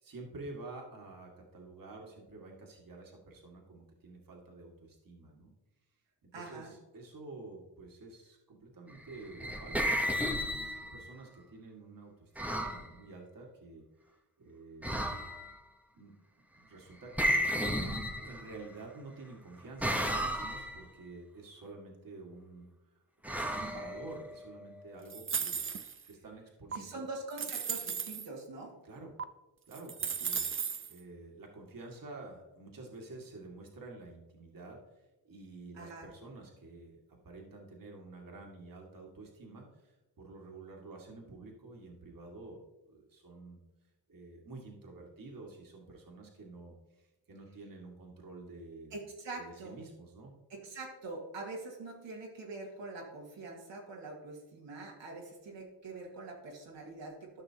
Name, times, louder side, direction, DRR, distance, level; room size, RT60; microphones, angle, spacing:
voice 1, 0.0-5.5 6.2-10.3 10.9-13.9 14.4-15.1 15.9-16.1 16.5-17.7 18.1-22.7 23.2-25.6 26.1-27.1 28.8-29.1 29.7-30.4 30.9-34.8 35.2-39.9 40.2-42.6 42.9-43.6 44.1-48.9 49.3-50.3, right 3 dB, 50° right, 0 dB, 2.0 m, -49 dB
voice 2, 6.3-6.7 26.7-28.7 35.7-36.1 48.9-49.8 50.5-57.4, right 3 dB, 80° right, -2 dB, 2.2 m, -44 dB
sound 1, 9.1-11.1 12.4-12.9 14.8-15.6 17.2-18.6 19.8-20.8 23.2-24.4, equal, 5° right, 1.0 m, -33 dB
sound 2, 25.1-26.1 26.7-26.8 27.3-28.3 29.2-29.3 29.7-30.9, right 6 dB, 30° right, 0.5 m, -35 dB
13.0 x 5.9 x 2.9 m, 1.0 s
cardioid pair, 95°, 44 cm